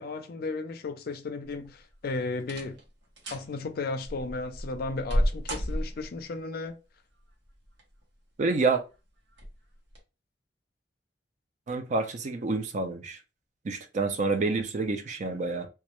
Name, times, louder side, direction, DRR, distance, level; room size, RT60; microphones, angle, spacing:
voice 1, 0.0-2.8 3.3-6.7, left 3 dB, 55° left, 0.4 m, -34 dB
sound 1, 1.4-1.9 2.4-2.8 3.2-3.5 4.1-6.2 7.5-8.0 8.5-8.6 9.3-9.5 9.9-10.0, equal, 80° right, 0.9 m, -31 dB
voice 2, 8.4-8.8 11.7-13.2 13.6-15.7, right 3 dB, 45° right, 0.4 m, -28 dB
2.3 x 2.0 x 2.8 m
head